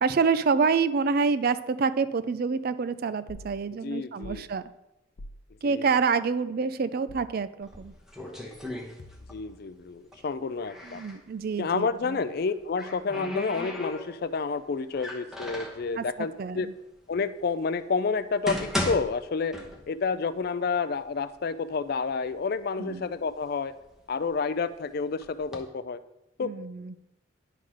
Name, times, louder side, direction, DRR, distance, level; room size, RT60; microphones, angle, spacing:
voice 1, 0.0-4.7 5.6-7.9 10.8-12.2 16.0-16.7 22.8-23.1 26.4-26.9, right 5 dB, 45° right, 14 dB, 0.4 m, -27 dB
sound 1, 3.3-3.5 4.2-4.5 5.2-5.4 7.1-7.4 9.0-9.5, left 2 dB, 85° left, 0.6 m, -45 dB
voice 2, 3.8-4.5 5.6-5.9 9.3-11.0 11.6-16.7 17.1-19.6 19.9-23.7 24.1-26.0 26.4-26.5, left 4 dB, 50° left, 13 dB, 0.4 m, -29 dB
sound 2, 7.6-9.5 9.8-11.2 12.3-14.4 14.9-15.9 16.6-16.7 17.4-17.5 18.1-20.1 20.4-20.5 21.2-21.3 21.7-22.4 22.9-24.6 25.2-25.6, left 1 dB, ahead, 0.9 m, -36 dB
10.0 x 3.8 x 6.2 m, 0.90 s
head